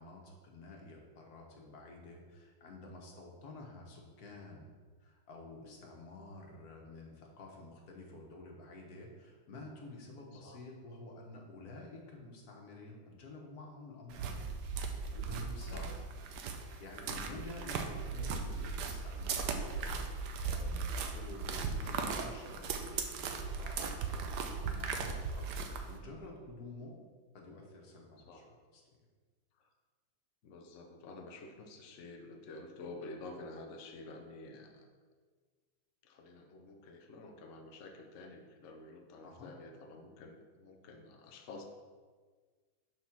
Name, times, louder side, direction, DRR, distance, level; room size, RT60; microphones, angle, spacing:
voice 1, 0.0-4.7 5.0-14.4 15.1-15.9 16.8-27.0 27.3-28.8 39.2-39.5, left 2 dB, 55° left, 0 dB, 1.5 m, -50 dB
voice 2, 10.3-10.6 15.6-16.0 28.2-28.6 29.6-29.7 30.4-34.9 36.0-41.6, left 2 dB, 80° left, 3 dB, 0.6 m, -50 dB
sound 1, 14.1-26.0, right 5 dB, 70° right, 1.1 m, -38 dB
6.2 x 4.1 x 5.9 m, 1.5 s
omnidirectional pair, 2.2 m